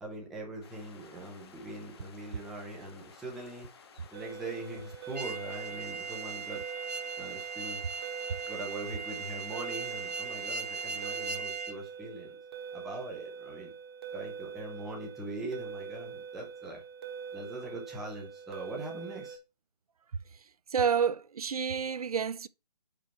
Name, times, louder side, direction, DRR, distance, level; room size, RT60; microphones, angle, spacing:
voice 1, 0.0-3.7 4.1-6.6 7.2-7.8 8.5-12.4 12.7-13.7 14.1-16.8 17.3-19.4, right 2 dB, ahead, 0.4 m, -42 dB
sound 1, 0.6-11.4, left 6 dB, 40° left, 0.9 m, -55 dB
sound 2, 4.1-19.4, right 7 dB, 40° right, 1.0 m, -43 dB
sound 3, 5.1-11.8, right 5 dB, 90° right, 0.9 m, -38 dB
voice 2, 20.7-22.5, right 7 dB, 65° right, 0.4 m, -29 dB
5.2 x 4.4 x 5.4 m
figure-of-eight pair, 145°, 21 cm